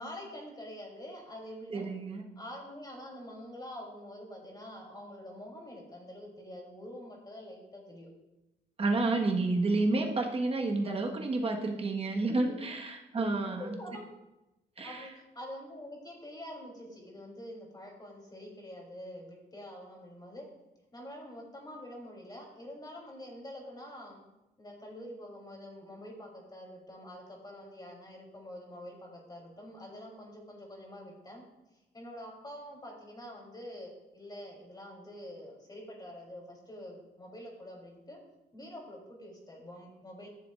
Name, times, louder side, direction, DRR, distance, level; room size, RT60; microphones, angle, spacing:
voice 1, 0.0-1.9 2.4-8.1 12.3-12.4 13.2-13.3 13.6-14.0 14.8-20.5 20.9-24.2 24.6-31.4 31.9-38.2 38.5-40.3, left 1 dB, 25° left, -1 dB, 3.4 m, -46 dB
voice 2, 1.7-2.2 8.8-13.8 14.8-15.1, right 2 dB, 35° right, 1 dB, 1.5 m, -30 dB
14.0 x 7.0 x 2.6 m, 0.97 s
cardioid pair, 95°, 18 cm